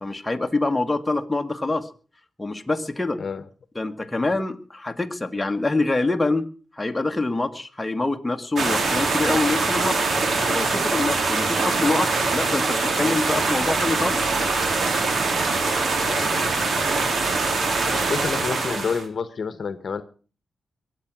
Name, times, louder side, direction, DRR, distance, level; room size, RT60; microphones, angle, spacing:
voice 1, 0.0-1.9 2.4-3.2 3.7-6.5 6.7-10.1 10.5-14.5, left 2 dB, 15° left, 5 dB, 1.6 m, -25 dB
sound 1, 8.6-19.0, right 3 dB, 60° right, 2.6 m, -23 dB
voice 2, 16.1-16.9 17.9-20.0, left 5 dB, 55° left, 13 dB, 1.1 m, -29 dB
22.5 x 8.2 x 6.1 m, 0.39 s
cardioid pair, 80°, 0 cm